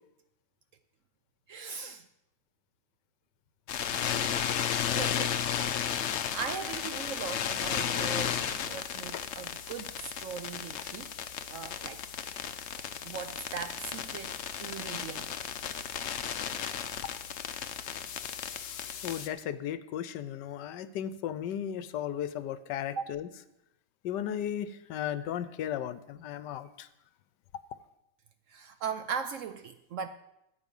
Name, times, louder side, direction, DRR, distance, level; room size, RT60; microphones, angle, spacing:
voice 1, 1.5-2.0 4.9-5.3 5.6-6.0 6.3-11.1 11.5-12.0 13.0-14.3 14.6-15.3 22.9-23.0 28.5-30.1, right 6 dB, 70° right, 0.7 m, -39 dB
sound 1, 3.7-19.3, left 8 dB, 60° left, 0.7 m, -34 dB
voice 2, 19.0-23.3 24.0-26.9, left 10 dB, 80° left, 1.3 m, -35 dB
14.0 x 8.4 x 5.4 m
omnidirectional pair, 1.9 m